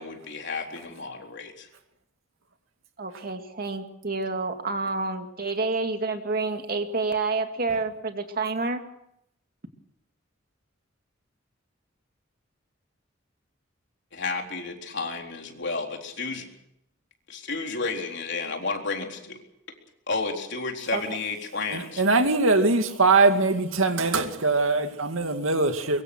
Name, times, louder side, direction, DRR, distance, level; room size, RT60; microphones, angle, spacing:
voice 1, 0.0-1.7 14.1-16.5 17.3-19.4 20.1-22.0, left 4 dB, 60° left, 3 dB, 3.9 m, -32 dB
voice 2, 3.0-8.8 20.9-21.0, right 3 dB, 50° right, 5 dB, 2.5 m, -28 dB
voice 3, 21.7-26.0, right 3 dB, 85° right, 7 dB, 2.4 m, -22 dB
23.5 x 23.5 x 6.3 m, 0.77 s
head